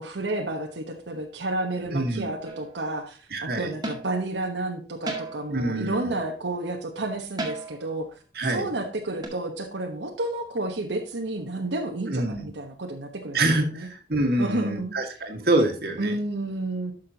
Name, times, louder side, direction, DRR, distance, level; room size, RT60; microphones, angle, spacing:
voice 1, 0.0-8.2 8.5-13.4 13.7-13.9 14.4-14.9 16.0-16.9, right 2 dB, 85° right, 2 dB, 1.1 m, -31 dB
voice 2, 1.8-2.3 3.3-3.7 5.5-6.2 8.3-8.7 12.1-12.5 13.3-16.2, right 1 dB, 60° right, 3 dB, 1.7 m, -26 dB
sound 1, 2.4-2.8 3.8-4.2 5.1-5.6 7.4-7.9 9.2-9.3, right 2 dB, 25° right, 1.9 m, -34 dB
11.5 x 6.4 x 2.8 m, 0.39 s
head